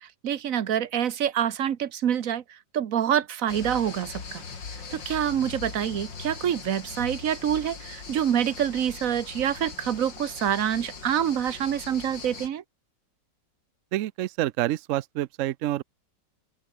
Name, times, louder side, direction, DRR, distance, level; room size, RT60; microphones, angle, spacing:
voice 1, 0.0-4.4 4.9-12.6, right 9 dB, 55° right, 1.3 m, -26 dB
sound 1, 3.5-12.5, left 5 dB, 75° left, 3.6 m, -40 dB
voice 2, 13.9-15.8, right 14 dB, 90° right, 0.6 m, -28 dB
open air
omnidirectional pair, 2.0 m